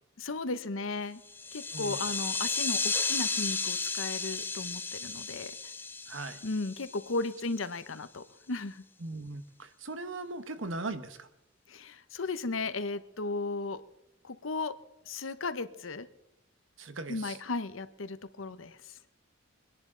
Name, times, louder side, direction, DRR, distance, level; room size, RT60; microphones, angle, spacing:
voice 1, 0.2-1.2 1.5-5.5 6.4-8.8 11.7-13.8 14.2-14.7 15.1-16.1 17.1-19.0, left 3 dB, 90° left, 13 dB, 0.9 m, -35 dB
sound 1, 1.3-7.3, left 4 dB, 10° left, 0.5 m, -33 dB
voice 2, 6.1-6.4 9.0-11.3 16.8-17.4, right 2 dB, 75° right, 10 dB, 1.2 m, -39 dB
24.5 x 10.5 x 3.8 m, 0.88 s
head